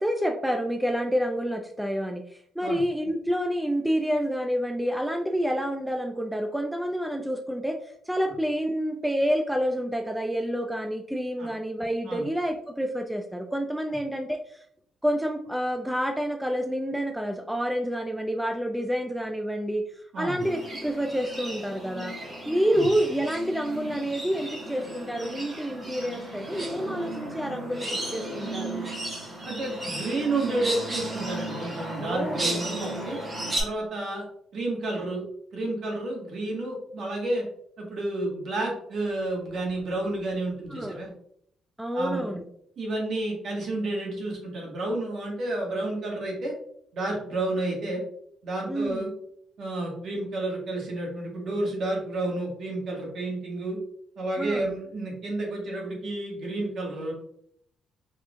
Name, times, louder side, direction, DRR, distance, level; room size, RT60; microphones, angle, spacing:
voice 1, 0.0-7.8 8.1-14.6 15.0-19.8 20.2-22.1 22.4-28.9 32.0-32.7 40.7-41.0 41.8-42.5 48.7-49.1 54.4-54.7, equal, 5° right, 4 dB, 0.4 m, -28 dB
sound 1, 20.4-33.6, right 1 dB, 30° right, 1.5 m, -35 dB
voice 2, 29.4-33.2 33.6-34.2 34.5-35.2 35.5-37.4 37.8-41.1 41.9-42.4 42.8-46.5 46.9-48.0 48.4-49.1 49.6-53.8 54.2-57.1, right 2 dB, 60° right, -1 dB, 1.5 m, -30 dB
4.4 x 3.2 x 2.4 m, 0.68 s
cardioid pair, 90°, 0 cm